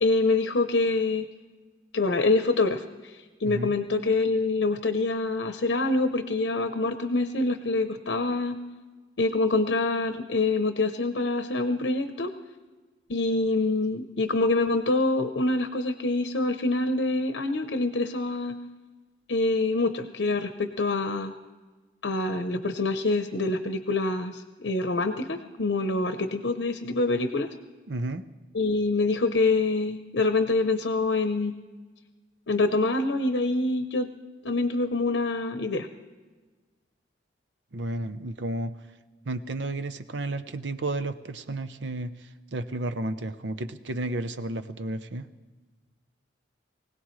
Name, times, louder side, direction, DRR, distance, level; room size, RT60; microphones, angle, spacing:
voice 1, 0.0-1.3 1.9-8.6 9.2-12.3 13.1-18.6 19.3-21.3 22.0-27.5 28.5-31.5 32.5-34.1 34.4-35.9, left 2 dB, 85° left, 7 dB, 0.8 m, -26 dB
voice 2, 27.9-28.2 37.7-38.8 39.2-45.3, right 2 dB, 80° right, 11 dB, 0.8 m, -32 dB
24.5 x 17.0 x 3.2 m, 1.3 s
head